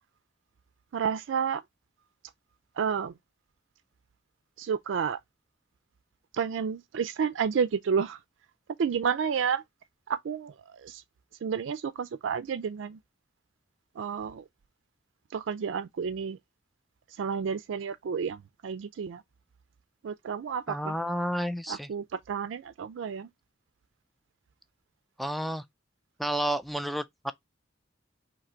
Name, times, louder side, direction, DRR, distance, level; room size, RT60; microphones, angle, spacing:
voice 1, 0.9-1.6 2.8-3.1 4.6-5.2 6.3-8.2 8.8-9.6 10.1-11.0 11.4-13.0 14.0-14.4 15.3-16.4 17.2-19.2 20.0-20.9 21.7-23.3, right 6 dB, 80° right, 0.4 m, -30 dB
voice 2, 20.7-21.9 25.2-25.6 26.2-27.3, equal, ahead, 0.3 m, -31 dB
3.8 x 3.0 x 4.3 m
head